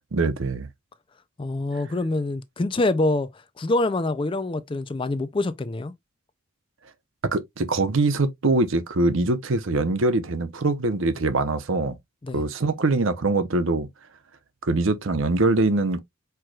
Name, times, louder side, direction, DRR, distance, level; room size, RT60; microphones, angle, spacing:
voice 1, 0.1-0.7 7.3-11.9 12.3-13.9 14.6-16.0, right 2 dB, 65° right, 0.7 m, -23 dB
voice 2, 1.4-5.9 12.2-12.4, left 2 dB, 25° left, 0.4 m, -25 dB
4.6 x 4.5 x 2.3 m
head